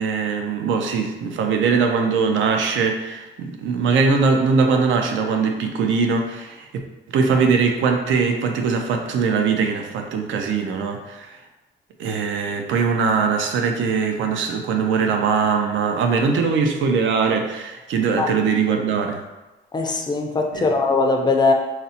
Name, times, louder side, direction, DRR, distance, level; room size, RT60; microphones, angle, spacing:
voice 1, 0.0-6.7 7.1-11.3 12.0-19.2 20.5-20.7, right 5 dB, 75° right, 4 dB, 0.5 m, -21 dB
voice 2, 19.7-21.5, left 3 dB, 20° left, 3 dB, 0.4 m, -20 dB
4.0 x 2.0 x 2.7 m, 1.1 s
cardioid pair, 90°, 20 cm